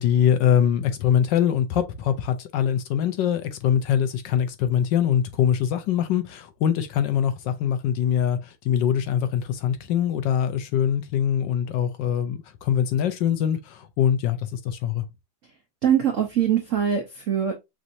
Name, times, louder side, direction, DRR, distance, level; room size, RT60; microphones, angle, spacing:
voice 1, 0.0-15.0, left 9 dB, 75° left, 1.1 m, -23 dB
voice 2, 15.8-17.5, right 9 dB, 80° right, 0.6 m, -22 dB
6.1 x 2.6 x 2.7 m
omnidirectional pair, 2.3 m